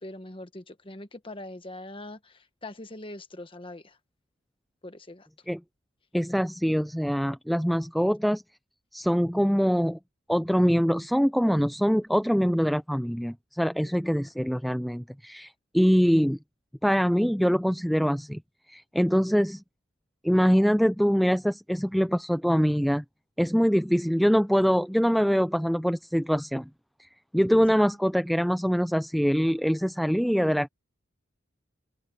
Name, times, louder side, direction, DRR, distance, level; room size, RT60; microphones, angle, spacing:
voice 1, 0.0-4.0 4.8-5.3 13.8-14.3, left 1 dB, 25° left, 1.3 m, -42 dB
voice 2, 6.1-8.4 8.9-10.0 10.3-16.4 16.8-18.4 18.7-19.6 20.2-23.0 23.4-26.7 27.0-27.1 27.3-30.7, equal, ahead, 0.3 m, -24 dB
open air
head